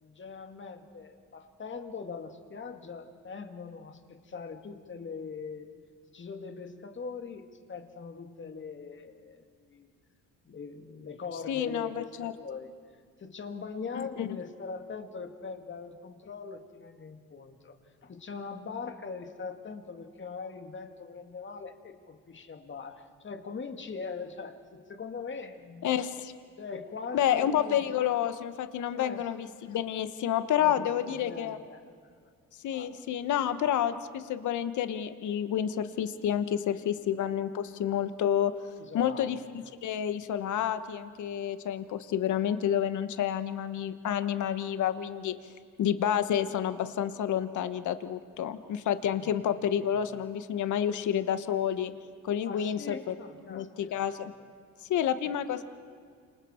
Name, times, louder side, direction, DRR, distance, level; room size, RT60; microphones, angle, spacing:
voice 1, 0.0-5.7 6.1-9.9 10.4-12.7 13.2-17.8 18.0-25.9 26.6-27.9 28.9-29.3 30.5-32.3 32.7-32.9 33.2-33.3 38.8-39.3 49.2-49.3 52.4-54.0, left 5 dB, 40° left, 6 dB, 2.2 m, -41 dB
voice 2, 11.5-12.3 13.9-14.4 25.8-26.3 27.1-31.6 32.6-38.5 38.9-39.4 39.8-45.3 45.8-51.9 52.2-53.1 53.5-54.3 54.9-55.6, left 10 dB, 75° left, 11 dB, 1.2 m, -29 dB
29.5 x 26.5 x 4.4 m, 2.1 s
cardioid pair, 90°, 30 cm